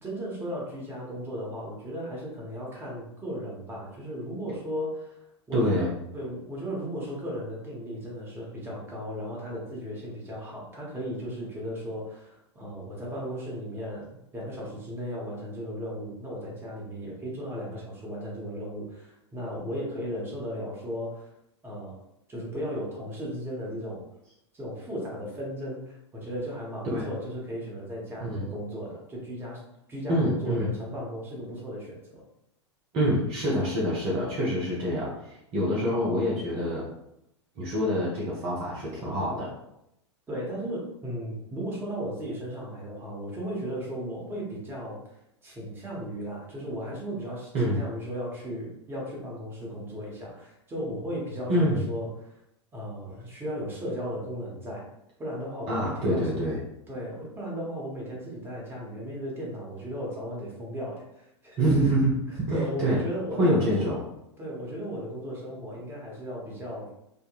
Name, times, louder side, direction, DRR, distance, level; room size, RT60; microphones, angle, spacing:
voice 1, 0.0-5.2 5.5-5.9 6.1-21.3 21.6-22.0 22.3-24.0 24.5-29.6 29.9-32.2 40.3-45.2 45.4-52.3 52.7-54.9 55.2-56.4 56.9-61.9 62.5-63.9 64.4-66.9, equal, 15° right, -3 dB, 1.0 m, -36 dB
voice 2, 5.5-5.9 26.9-27.1 28.2-28.5 30.1-30.7 32.9-36.8 37.6-39.5 47.5-47.8 51.5-51.9 55.7-56.6 61.6-62.1 62.5-63.0 63.3-64.0, equal, 40° right, -4 dB, 0.7 m, -26 dB
3.6 x 2.1 x 2.3 m, 0.81 s
figure-of-eight pair, 90°, 15 cm